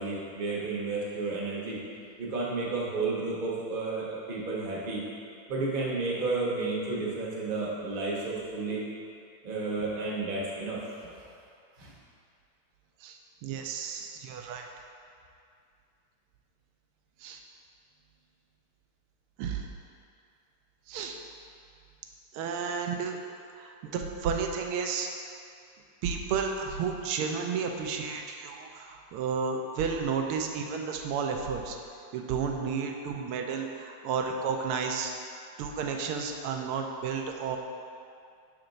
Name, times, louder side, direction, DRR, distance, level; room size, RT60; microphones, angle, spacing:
voice 1, 0.0-1.8 2.2-5.0 5.5-8.8 9.4-10.8 11.8-11.9, right 3 dB, 40° right, -5 dB, 0.8 m, -32 dB
voice 2, 13.0-14.7 17.2-17.4 19.4-19.6 20.9-21.2 22.3-23.2 23.6-25.1 26.0-31.8 32.1-35.1 35.6-37.6, right 6 dB, 85° right, 3 dB, 1.5 m, -32 dB
6.1 x 4.4 x 3.9 m, 2.4 s
omnidirectional pair, 2.4 m